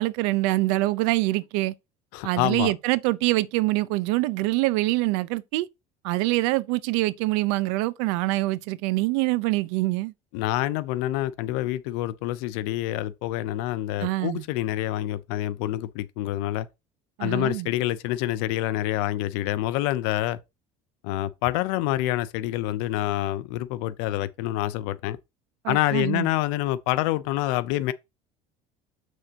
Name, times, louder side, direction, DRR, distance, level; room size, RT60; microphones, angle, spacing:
voice 1, 0.0-1.7 2.2-5.7 6.0-10.1 14.0-14.4 17.2-17.7 25.6-26.3, right 20 dB, 80° right, 0.6 m, -25 dB
voice 2, 2.1-2.7 10.3-16.7 17.2-20.4 21.0-25.2 25.7-27.9, left 15 dB, 75° left, 0.7 m, -27 dB
7.8 x 6.3 x 2.9 m
cardioid pair, 160°, 15 cm